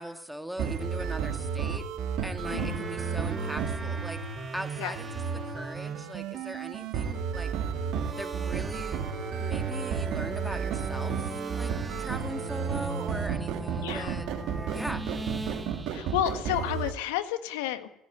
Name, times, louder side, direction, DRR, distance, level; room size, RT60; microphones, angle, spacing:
voice 1, 0.0-1.9 2.2-4.2 4.5-7.5 8.2-9.1 9.4-14.3 14.7-15.1, right 1 dB, 5° right, 7 dB, 2.4 m, -40 dB
sound 1, 0.6-16.9, right 6 dB, 65° right, 3.0 m, -33 dB
sound 2, 2.4-6.1 7.8-16.2, right 3 dB, 20° right, 1.6 m, -40 dB
voice 2, 2.5-2.8 4.8-5.0 13.8-14.2 15.9-17.9, left 12 dB, 80° left, 9 dB, 1.7 m, -31 dB
17.0 x 16.5 x 9.5 m, 0.79 s
hypercardioid pair, 60°, 0 cm